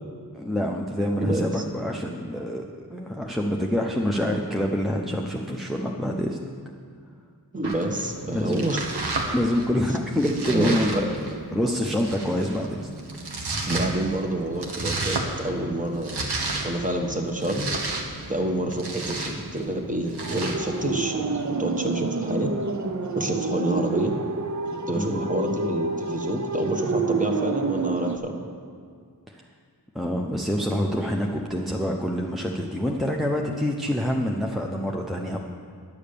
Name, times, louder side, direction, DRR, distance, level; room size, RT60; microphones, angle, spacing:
voice 1, 0.3-2.6 2.9-6.4 8.3-8.8 9.3-12.9 24.9-25.3 29.3-29.4 29.9-35.4, equal, ahead, 0 dB, 0.7 m, -26 dB
voice 2, 1.2-1.6 7.5-8.9 9.9-10.0 10.5-11.0 13.7-16.3 16.6-17.7 18.3-22.5 23.1-24.2 24.9-28.3, right 1 dB, 20° right, 2 dB, 1.1 m, -28 dB
Domestic sounds home sounds, 7.6-20.9, right 2 dB, 80° right, 1.3 m, -33 dB
sound 1, 20.2-28.2, right 3 dB, 45° right, 0.7 m, -28 dB
10.5 x 7.1 x 6.8 m, 2.2 s
wide cardioid pair, 70°, 39 cm